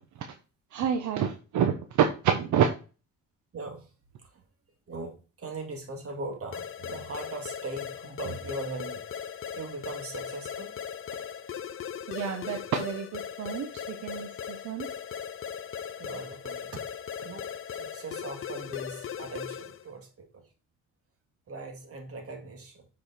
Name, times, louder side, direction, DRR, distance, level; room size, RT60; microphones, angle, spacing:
voice 1, 0.7-2.7 12.1-14.9, right 8 dB, 75° right, 6 dB, 0.9 m, -28 dB
voice 2, 3.5-3.9 4.2-4.5 4.9-9.0 9.5-10.7 16.0-16.8 17.2-17.5 17.8-20.5 21.5-22.9, right 2 dB, 50° right, 4 dB, 2.3 m, -40 dB
sound 1, 6.5-19.9, left 8 dB, 45° left, 0.6 m, -38 dB
7.1 x 5.0 x 4.1 m, 0.34 s
cardioid pair, 90°, 30 cm